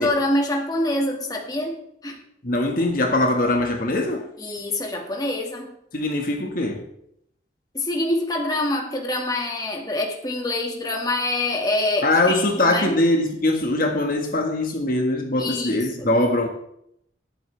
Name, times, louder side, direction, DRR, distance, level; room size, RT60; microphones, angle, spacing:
voice 1, 0.0-1.8 2.0-2.2 4.4-5.7 7.7-13.0 15.4-16.1, left 1 dB, 20° left, 1 dB, 1.9 m, -25 dB
voice 2, 2.4-4.2 5.9-6.8 12.0-16.5, left 2 dB, 50° left, 3 dB, 1.6 m, -22 dB
20.0 x 8.4 x 3.3 m, 0.73 s
head